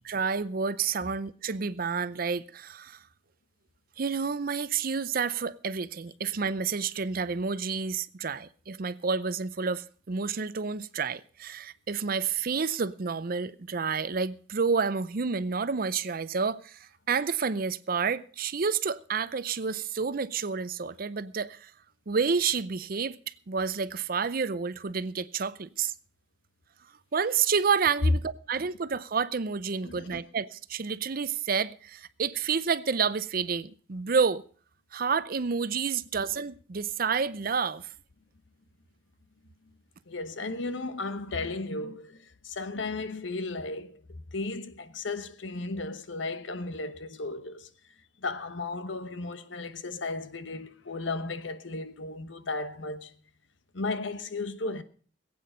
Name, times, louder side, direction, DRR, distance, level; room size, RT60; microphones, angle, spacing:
voice 1, 0.1-3.0 4.0-21.7 22.1-23.2 23.5-25.9 27.1-34.4 34.9-37.9, right 5 dB, 50° right, 0.6 m, -29 dB
voice 2, 29.8-30.2 40.1-47.7 48.2-53.1 53.7-54.8, left 3 dB, 80° left, 1.1 m, -35 dB
20.5 x 8.7 x 5.0 m
head